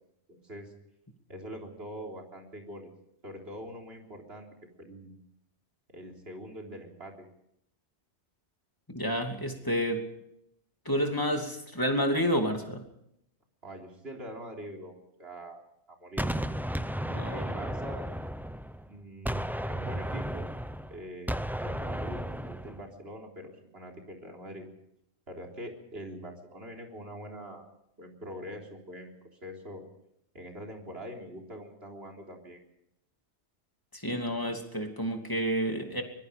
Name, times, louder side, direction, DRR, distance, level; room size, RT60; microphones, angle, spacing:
voice 1, 0.3-0.7 1.3-2.9 3.2-4.5 4.8-5.1 5.9-7.3 13.6-15.6 15.9-16.6 17.3-18.1 18.9-20.5 20.9-24.7 25.3-27.7 28.0-29.1 29.4-29.8 30.3-32.6, equal, 65° right, 1 dB, 4.0 m, -43 dB
voice 2, 8.9-10.1 10.8-12.8 17.0-17.5 33.9-36.0, equal, 20° left, 3 dB, 2.7 m, -30 dB
Gunshot gunfire, 16.2-18.9 19.3-22.8, equal, ahead, 0.5 m, -34 dB
24.5 x 21.0 x 5.3 m, 0.78 s
omnidirectional pair, 1.1 m